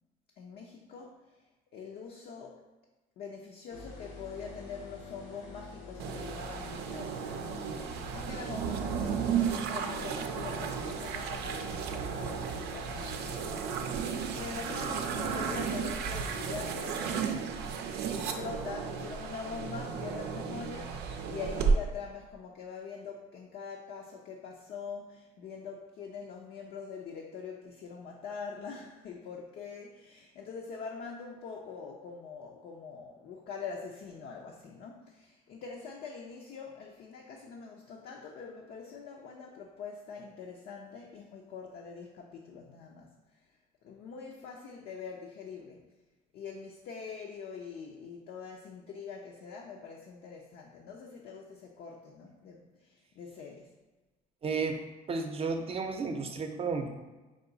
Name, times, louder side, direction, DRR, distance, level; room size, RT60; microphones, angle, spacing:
voice 1, 0.4-1.3 1.7-2.7 3.2-7.4 8.1-17.1 18.1-43.4 43.8-45.9 46.3-53.7, left 5 dB, 65° left, -1 dB, 0.5 m, -44 dB
sound 1, 3.7-15.9, left 3 dB, 90° left, 0.9 m, -47 dB
sound 2, 6.0-21.7, right 6 dB, 75° right, 0.5 m, -34 dB
voice 2, 54.4-54.8 55.1-56.9, right 4 dB, 35° right, 5 dB, 0.6 m, -32 dB
4.9 x 2.3 x 3.8 m, 1.2 s
cardioid pair, 110°, 17 cm